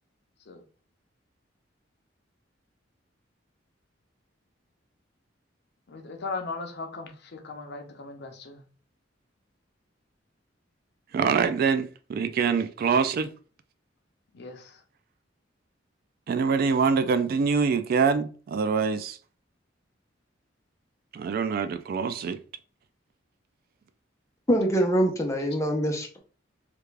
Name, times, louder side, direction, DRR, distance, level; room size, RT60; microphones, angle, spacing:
voice 1, 5.9-8.6 14.3-14.8, left 3 dB, 60° left, 0.6 m, -38 dB
voice 2, 11.1-13.3 16.3-19.2 21.1-22.4, right 5 dB, 50° right, 0.3 m, -25 dB
voice 3, 24.5-26.2, right 1 dB, 15° left, 0.7 m, -24 dB
3.4 x 2.4 x 3.2 m
head